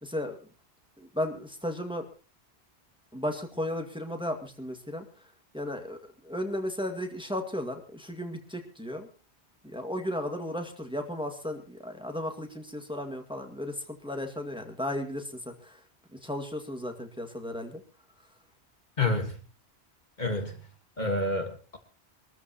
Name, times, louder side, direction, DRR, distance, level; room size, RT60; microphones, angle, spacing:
voice 1, 0.0-0.4 1.0-2.1 3.1-5.1 5.5-6.0 6.2-9.1 9.6-15.8 16.1-17.8, left 1 dB, 5° right, 3 dB, 2.0 m, -35 dB
voice 2, 19.0-19.4 20.2-20.6 21.0-21.8, left 2 dB, 45° left, 5 dB, 1.8 m, -28 dB
25.5 x 13.5 x 3.0 m, 0.34 s
omnidirectional pair, 1.1 m